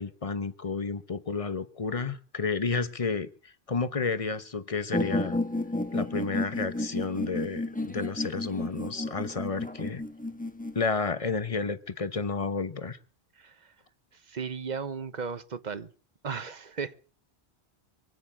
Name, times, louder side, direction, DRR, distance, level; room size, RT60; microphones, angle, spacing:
voice 1, 0.0-5.4 5.9-10.0 10.7-13.0, left 4 dB, 35° left, 1.1 m, -31 dB
sound 1, 4.9-10.8, left 2 dB, 10° left, 1.2 m, -32 dB
voice 2, 14.3-15.9 16.2-16.9, right 5 dB, 45° right, 1.1 m, -35 dB
23.5 x 9.8 x 6.2 m
omnidirectional pair, 1.1 m